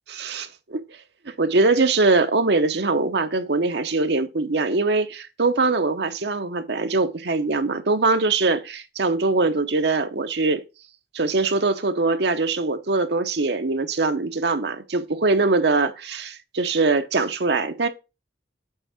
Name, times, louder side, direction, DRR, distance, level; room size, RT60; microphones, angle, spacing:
voice 1, 0.2-0.8 1.4-10.6 11.1-17.9, right 3 dB, 65° right, 0.9 m, -22 dB
7.8 x 3.7 x 5.8 m
head